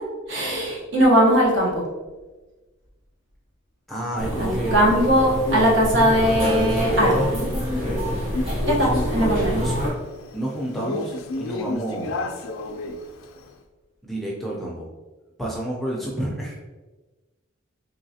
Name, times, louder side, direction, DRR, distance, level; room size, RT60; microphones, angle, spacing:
voice 1, 0.3-1.8 4.4-7.2 8.6-9.6, equal, 60° right, -3 dB, 1.0 m, -19 dB
voice 2, 3.9-4.9 8.7-9.8 10.3-12.2 14.0-14.9 15.4-16.6, right 1 dB, ahead, -4 dB, 0.4 m, -30 dB
sound 1, 4.2-9.9, equal, 25° right, 1.3 m, -26 dB
Male speech man speaking, 5.0-13.5, left 2 dB, 80° left, 0.4 m, -33 dB
3.9 x 3.1 x 2.7 m, 1.2 s
head